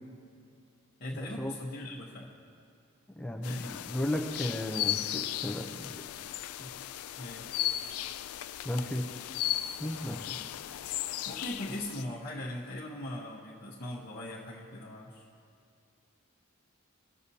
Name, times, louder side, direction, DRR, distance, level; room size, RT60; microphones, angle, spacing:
voice 1, 1.0-2.3 3.4-3.7 7.2-7.5 11.2-15.2, left 1 dB, 45° left, -7 dB, 0.9 m, -40 dB
voice 2, 3.2-6.0 6.6-6.7 8.6-9.0 9.8-10.4, left 1 dB, 5° left, 3 dB, 0.5 m, -34 dB
sound 1, 3.4-12.0, left 13 dB, 85° left, 0.3 m, -36 dB
18.5 x 6.7 x 2.8 m, 2.4 s
head